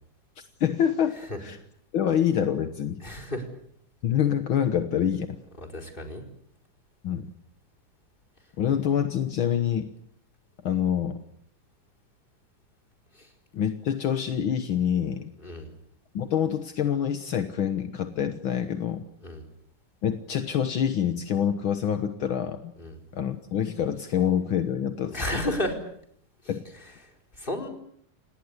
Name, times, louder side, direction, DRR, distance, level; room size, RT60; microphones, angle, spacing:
voice 1, 0.6-1.6 1.9-3.0 4.0-5.4 7.0-7.3 8.6-9.9 10.6-11.2 13.5-15.3 16.1-19.0 20.0-22.7 23.1-25.2 26.5-26.6, left 9 dB, 60° left, 8 dB, 1.4 m, -26 dB
voice 2, 3.0-3.4 5.6-6.2 13.1-13.3 15.4-15.7 19.2-19.4 22.8-23.0 25.1-25.8 26.8-26.9 27.3-27.7, left 1 dB, 15° left, 3 dB, 4.4 m, -32 dB
28.5 x 19.0 x 8.2 m, 0.69 s
omnidirectional pair, 3.8 m